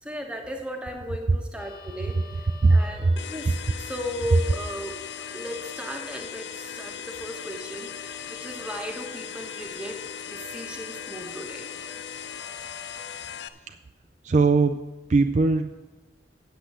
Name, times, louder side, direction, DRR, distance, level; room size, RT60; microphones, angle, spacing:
voice 1, 0.0-4.9 5.3-10.0 10.3-11.7, equal, 5° right, 3 dB, 1.1 m, -36 dB
sound 1, 1.6-13.2, left 4 dB, 55° left, 1.6 m, -47 dB
sound 2, 3.2-13.5, left 8 dB, 80° left, 0.5 m, -39 dB
voice 2, 14.2-14.8 15.1-15.7, right 3 dB, 40° right, 6 dB, 0.4 m, -19 dB
8.2 x 6.9 x 7.5 m, 1.2 s
head